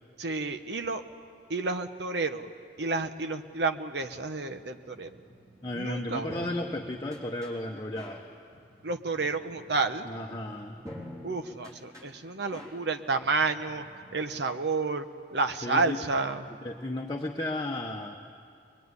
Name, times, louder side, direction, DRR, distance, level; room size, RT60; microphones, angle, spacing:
voice 1, 0.2-1.0 1.5-2.5 2.8-5.1 5.7-6.3 8.8-10.1 11.2-13.9 14.1-15.1 15.3-16.4, right 3 dB, 65° right, 8 dB, 1.0 m, -30 dB
sound 1, 4.9-14.2, left 1 dB, 15° right, 3.7 m, -48 dB
voice 2, 5.6-8.2 10.0-10.8 15.6-16.0 16.6-18.2, left 1 dB, 20° left, 0 dB, 1.1 m, -34 dB
23.0 x 22.5 x 9.7 m, 2.4 s
head